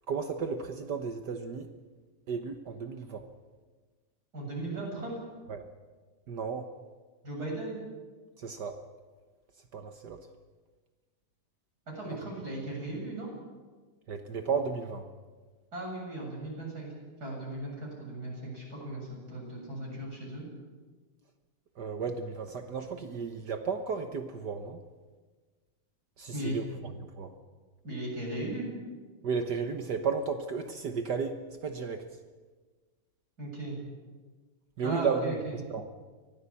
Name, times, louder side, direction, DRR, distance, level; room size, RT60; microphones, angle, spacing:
voice 1, 0.1-1.7 2.3-3.3 5.5-5.6 6.3-6.7 8.4-8.8 9.7-10.3 14.1-15.1 21.8-24.8 26.2-27.3 29.2-32.0 34.8-35.8, right 5 dB, 75° right, 7 dB, 0.9 m, -33 dB
voice 2, 4.3-5.2 7.2-7.8 11.9-13.3 15.7-16.9 17.2-20.4 26.3-26.6 27.8-28.7 33.4-33.8 34.8-35.6, right 1 dB, 30° right, -1 dB, 8.2 m, -37 dB
24.0 x 17.5 x 8.5 m, 1.4 s
omnidirectional pair, 3.6 m